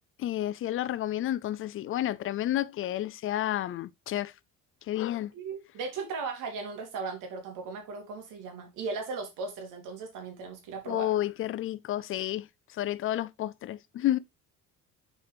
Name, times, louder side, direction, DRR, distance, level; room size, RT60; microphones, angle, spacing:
voice 1, 0.2-4.3 4.9-5.3 10.9-12.5 12.7-14.2, left 13 dB, 40° left, 0.4 m, -30 dB
voice 2, 5.3-11.1, right 4 dB, 75° right, 2.7 m, -37 dB
6.9 x 4.8 x 3.4 m
cardioid pair, 125°, 32 cm